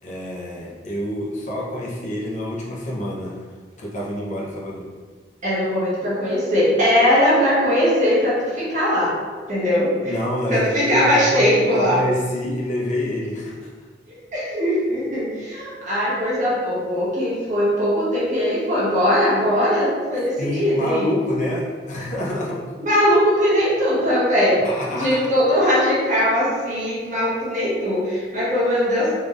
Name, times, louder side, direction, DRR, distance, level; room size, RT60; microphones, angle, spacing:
voice 1, 0.0-3.4 3.8-4.9 10.0-13.7 20.4-22.7 24.6-25.2, left 1 dB, 45° left, -4 dB, 0.7 m, -27 dB
voice 2, 5.4-9.1 9.5-10.1 10.5-12.0 14.1-21.1 22.8-24.6 24.9-29.1, equal, 45° right, -8 dB, 1.3 m, -20 dB
3.5 x 3.2 x 2.5 m, 1.5 s
head